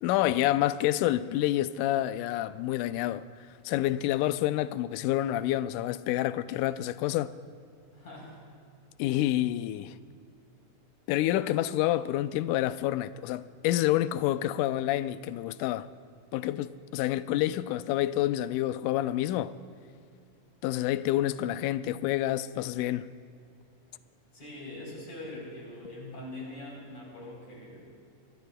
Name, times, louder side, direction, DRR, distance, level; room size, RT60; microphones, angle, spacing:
voice 1, 0.0-3.2 3.7-7.3 9.0-10.0 11.1-15.9 16.3-19.6 20.6-23.1, left 14 dB, 85° left, 1.8 m, -28 dB
voice 2, 7.9-8.4 24.3-27.9, left 1 dB, 50° left, 4.7 m, -43 dB
27.5 x 22.5 x 2.2 m
omnidirectional pair, 4.0 m